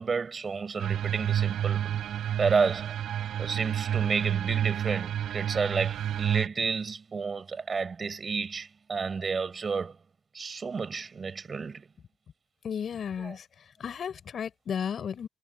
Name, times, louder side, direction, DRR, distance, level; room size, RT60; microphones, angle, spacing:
voice 1, 0.0-1.9 2.4-3.0 3.4-10.0 10.3-11.9 13.2-13.4, right 5 dB, 35° right, 7.3 m, -31 dB
sound 1, 0.8-6.5, right 10 dB, 70° right, 4.7 m, -29 dB
voice 2, 12.6-13.4 13.8-15.3, left 7 dB, 55° left, 4.6 m, -33 dB
cardioid pair, 90°, 0 cm